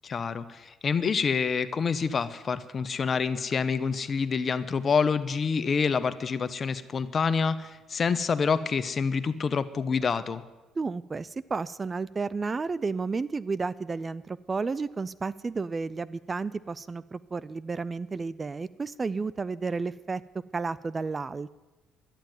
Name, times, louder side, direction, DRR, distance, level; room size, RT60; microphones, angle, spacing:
voice 1, 0.0-10.4, left 5 dB, 45° left, 13 dB, 0.9 m, -27 dB
voice 2, 10.8-20.2 20.5-21.5, right 4 dB, 30° right, 19 dB, 0.5 m, -32 dB
12.0 x 10.5 x 9.4 m, 1.1 s
supercardioid pair, 70°, 0 cm